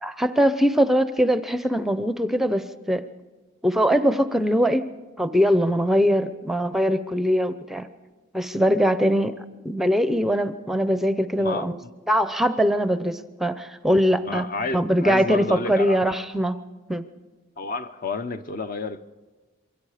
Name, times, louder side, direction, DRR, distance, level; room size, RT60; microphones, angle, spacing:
voice 1, 0.0-3.1 3.6-4.9 5.2-7.9 8.3-9.3 9.6-11.8 12.1-14.4 14.7-16.5 16.9-17.0, equal, ahead, 0.6 m, -22 dB
voice 2, 11.4-11.9 13.9-16.2 17.6-19.0, left 3 dB, 45° left, 0.8 m, -31 dB
27.5 x 23.5 x 5.0 m
head